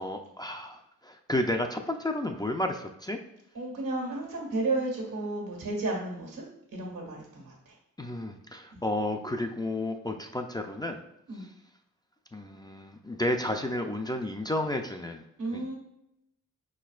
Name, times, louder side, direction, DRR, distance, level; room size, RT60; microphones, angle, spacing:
voice 1, 0.0-3.2 8.0-11.0 12.3-15.2 15.5-15.7, left 1 dB, 15° left, 4 dB, 0.3 m, -32 dB
voice 2, 3.5-6.4 6.7-7.8 8.7-8.8 11.3-11.5 15.4-15.7, right 2 dB, 85° right, -1 dB, 1.6 m, -33 dB
4.9 x 4.3 x 2.4 m, 0.81 s
cardioid pair, 80°, 32 cm